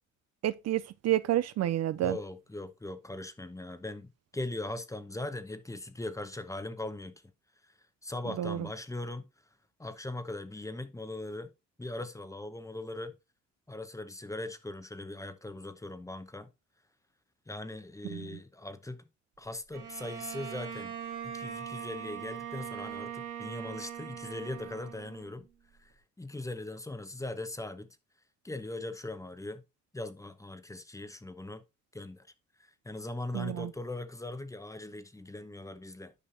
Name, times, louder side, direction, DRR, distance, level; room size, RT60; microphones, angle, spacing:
voice 1, 0.4-2.2 8.4-8.7 18.0-18.4 33.3-33.7, right 13 dB, 60° right, 0.4 m, -30 dB
voice 2, 2.0-7.2 8.0-9.3 9.8-11.5 11.8-13.1 13.7-16.5 17.5-19.0 19.4-21.0 21.2-25.5 25.8-25.9 26.2-27.9 28.4-29.6 29.9-31.6 31.9-32.3 32.8-36.1, left 2 dB, 10° left, 0.8 m, -40 dB
Bowed string instrument, 19.7-25.5, right 9 dB, 85° right, 2.6 m, -41 dB
10.0 x 5.4 x 2.6 m
cardioid pair, 90°, 30 cm